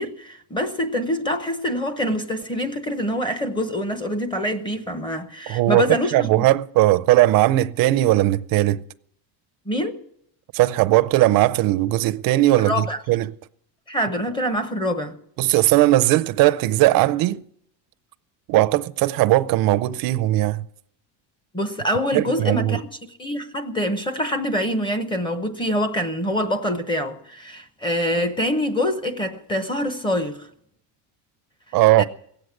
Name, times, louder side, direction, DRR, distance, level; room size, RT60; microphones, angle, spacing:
voice 1, 0.0-6.5 9.7-10.0 12.7-13.0 13.9-15.1 21.5-22.9 23.2-30.5 32.0-32.1, equal, 10° left, 0.9 m, -25 dB
voice 2, 5.5-5.8 6.1-8.8 10.5-13.3 15.4-17.4 18.5-20.6 22.1-22.8 31.7-32.0, right 16 dB, 50° right, 0.6 m, -18 dB
17.5 x 7.9 x 9.7 m
cardioid pair, 165°, 45 cm